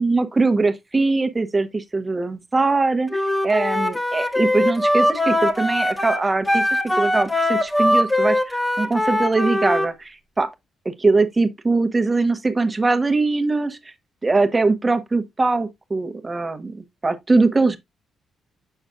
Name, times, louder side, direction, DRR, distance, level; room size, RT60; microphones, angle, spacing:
voice 1, 0.0-10.5 11.0-13.9 14.2-17.8, right 3 dB, 30° right, 1.2 m, -21 dB
Wind instrument woodwind instrument, 3.1-9.9, left 1 dB, 10° left, 1.3 m, -21 dB
7.8 x 6.5 x 2.4 m
hypercardioid pair, 40°, 0 cm